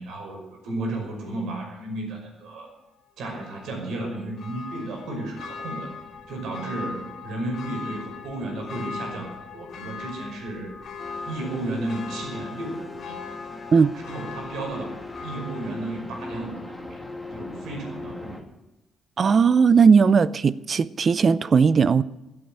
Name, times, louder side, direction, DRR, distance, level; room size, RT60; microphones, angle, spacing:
voice 1, 0.0-2.7 3.2-5.9 6.3-10.7 11.2-13.2 13.9-17.0 17.3-18.4, right 2 dB, 75° right, 5.6 m, -33 dB
Church bell, 3.3-16.9 17.3-17.4, left 5 dB, 60° left, 2.8 m, -40 dB
sound 1, 11.0-18.4, left 2 dB, 5° left, 2.3 m, -39 dB
voice 2, 19.2-22.0, right 5 dB, 45° right, 0.6 m, -17 dB
15.5 x 8.7 x 8.9 m
cardioid pair, 80°, 0 cm